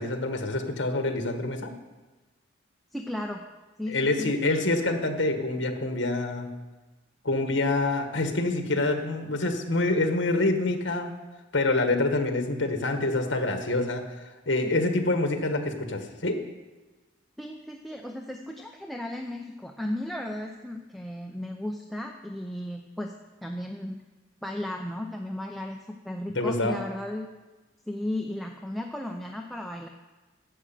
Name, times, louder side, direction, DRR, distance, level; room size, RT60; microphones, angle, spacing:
voice 1, 0.0-1.7 3.9-6.5 7.2-11.1 11.5-14.0 14.4-16.4 26.3-26.7, left 2 dB, 70° left, 5 dB, 1.6 m, -26 dB
voice 2, 2.9-3.4 3.8-4.3 17.4-23.1 23.4-24.0 24.4-27.3 27.9-29.9, left 1 dB, ahead, 1 dB, 0.6 m, -35 dB
11.0 x 8.0 x 7.5 m, 1.2 s
head